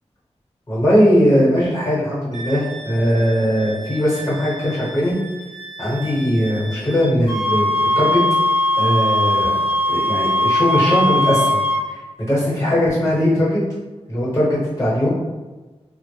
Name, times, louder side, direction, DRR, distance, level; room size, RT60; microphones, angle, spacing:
voice 1, 0.7-5.2 5.8-8.2 8.8-9.6 9.9-11.6 11.9-12.0 12.3-13.6 14.1-15.1, equal, 25° left, -7 dB, 1.0 m, -19 dB
Wind instrument woodwind instrument, 2.3-7.1, right 2 dB, 85° right, 0.6 m, -37 dB
sound 1, 7.3-11.8, left 1 dB, 50° left, 0.6 m, -19 dB
2.0 x 2.0 x 3.1 m, 1.2 s
wide cardioid pair, 60°, 11 cm